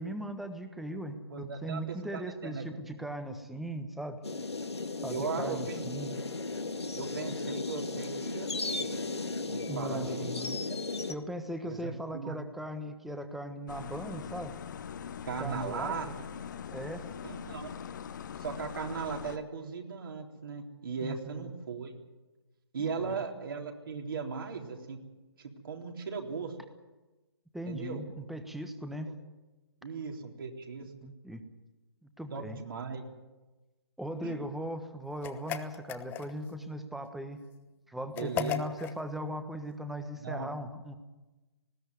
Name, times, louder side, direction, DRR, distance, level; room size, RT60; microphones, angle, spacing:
voice 1, 0.0-4.2 5.0-6.2 9.7-10.6 11.1-14.6 15.4-16.1 16.7-17.1 21.0-21.5 22.8-23.2 27.5-29.2 31.0-31.4 32.0-32.6 34.0-37.4 37.9-41.0, right 1 dB, ahead, 8 dB, 1.3 m, -39 dB
voice 2, 1.3-2.6 5.1-5.8 7.0-9.0 9.5-10.3 11.6-12.4 15.2-16.1 17.2-17.7 18.4-21.9 22.7-25.0 25.4-26.5 27.7-28.0 29.8-30.9 32.3-33.0 34.2-34.4 38.1-38.6 40.2-40.5, right 5 dB, 55° right, 2 dB, 3.7 m, -38 dB
sound 1, 4.2-11.1, left 3 dB, 80° left, 1.9 m, -35 dB
sound 2, 13.7-19.4, left 8 dB, 45° left, 1.2 m, -42 dB
sound 3, 35.2-36.5 38.2-39.0, left 11 dB, 15° left, 0.9 m, -36 dB
19.5 x 16.0 x 9.7 m, 1.1 s
figure-of-eight pair, 140°, 14 cm